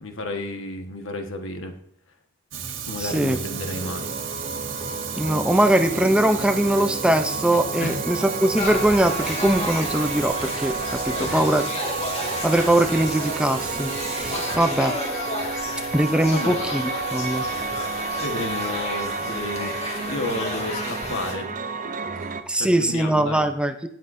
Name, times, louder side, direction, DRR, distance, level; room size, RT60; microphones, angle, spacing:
voice 1, 0.0-1.7 2.9-4.1 7.8-8.0 8.3-8.4 11.2-11.4 15.5-15.7 16.2-16.6 18.2-21.5 22.2-23.4, left 2 dB, 75° left, 5 dB, 1.4 m, -32 dB
Fire, 2.5-14.6, right 7 dB, 70° right, 1.4 m, -34 dB
voice 2, 3.0-3.4 5.2-11.6 12.4-15.0 15.9-17.5 22.5-23.9, right 1 dB, 5° right, 8 dB, 0.5 m, -21 dB
sound 1, 3.1-22.4, right 4 dB, 40° right, 0.7 m, -31 dB
sound 2, 8.5-21.3, left 2 dB, 35° left, 1.9 m, -33 dB
18.0 x 7.6 x 2.6 m, 0.69 s
head